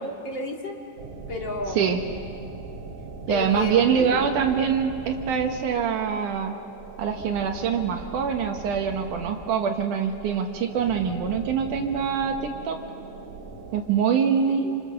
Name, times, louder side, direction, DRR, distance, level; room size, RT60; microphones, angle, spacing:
voice 1, 0.0-0.8 1.3-1.9 3.3-4.6 14.6-14.7, left 2 dB, 40° left, 1 dB, 1.6 m, -32 dB
sound 1, 1.0-13.8, right 4 dB, 45° right, 3.3 m, -40 dB
voice 2, 3.3-6.5 7.0-12.8 13.7-14.7, right 7 dB, 70° right, 4 dB, 2.0 m, -24 dB
28.0 x 26.5 x 6.8 m, 2.3 s
omnidirectional pair, 5.1 m